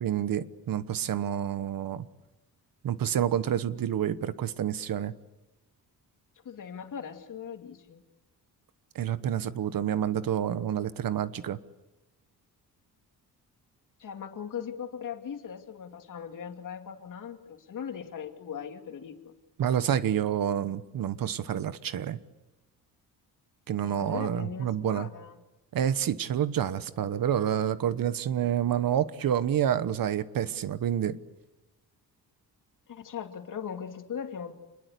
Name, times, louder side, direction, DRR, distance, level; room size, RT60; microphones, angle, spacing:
voice 1, 0.0-2.0 2.8-5.1 8.9-11.6 19.6-22.2 23.7-25.1 25.7-31.2, right 10 dB, 65° right, 14 dB, 1.2 m, -28 dB
voice 2, 6.4-8.0 14.0-19.3 23.8-25.4 32.9-34.5, left 7 dB, 55° left, 5 dB, 2.7 m, -39 dB
27.5 x 21.0 x 8.3 m, 1.1 s
wide cardioid pair, 150°, 37 cm